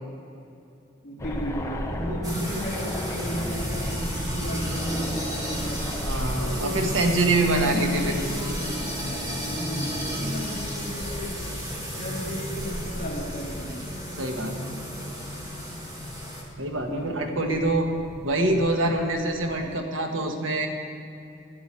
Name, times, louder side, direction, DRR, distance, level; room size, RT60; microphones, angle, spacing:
voice 1, 1.0-5.9 6.3-7.0 7.6-8.7 9.5-11.5 11.9-13.9 16.8-17.3, equal, 40° left, -5 dB, 3.4 m, -34 dB
sound 1, 1.2-19.8, equal, 15° left, 1.0 m, -37 dB
sound 2, 2.2-16.4, equal, 20° right, 2.2 m, -33 dB
voice 2, 6.0-8.3 14.2-14.6 16.6-17.9 18.2-20.7, right 2 dB, 75° right, 3 dB, 1.5 m, -25 dB
11.0 x 9.5 x 9.6 m, 2.6 s
head